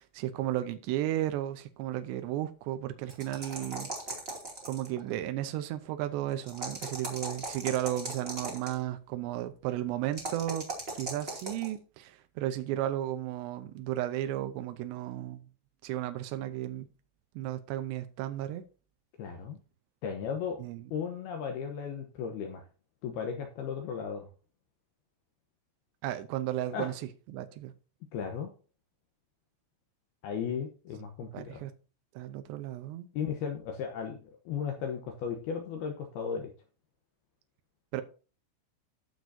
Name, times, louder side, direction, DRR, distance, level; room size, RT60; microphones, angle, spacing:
voice 1, 0.0-3.9 4.7-10.7 11.0-15.4 15.8-16.9 17.4-18.6 20.6-20.8 26.0-26.9 27.3-27.7 31.3-31.7 32.2-33.1 37.9-38.0, right 13 dB, 90° right, 2.5 m, -34 dB
sound 1, 3.1-5.0 6.4-8.8 10.1-11.7, right 2 dB, 40° right, 0.8 m, -38 dB
voice 2, 19.2-19.6 20.0-20.6 20.9-22.6 23.0-24.3 26.7-27.0 28.1-28.5 30.2-31.6 33.1-36.5, left 7 dB, 75° left, 2.3 m, -35 dB
17.0 x 6.2 x 2.7 m
omnidirectional pair, 5.9 m